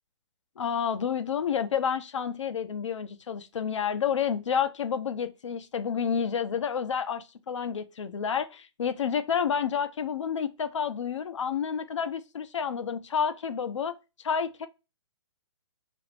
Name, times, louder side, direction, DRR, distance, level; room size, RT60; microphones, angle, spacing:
voice 1, 0.6-14.0 14.2-14.7, left 7 dB, 85° left, 0.6 m, -29 dB
4.9 x 2.5 x 3.3 m
hypercardioid pair, 170°, 15 cm